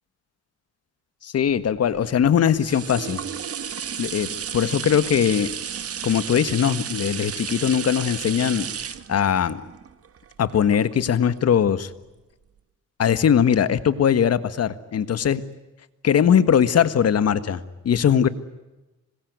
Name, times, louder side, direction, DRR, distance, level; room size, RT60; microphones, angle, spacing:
voice 1, 1.2-3.2 4.0-5.5 6.0-9.6 10.4-11.9 13.0-15.4 16.0-18.3, left 8 dB, 55° left, 13 dB, 1.7 m, -20 dB
sound 1, 1.6-11.3 11.8-11.9, right 8 dB, 50° right, 1.7 m, -33 dB
26.0 x 21.5 x 9.5 m, 1.1 s
cardioid pair, 90°, 30 cm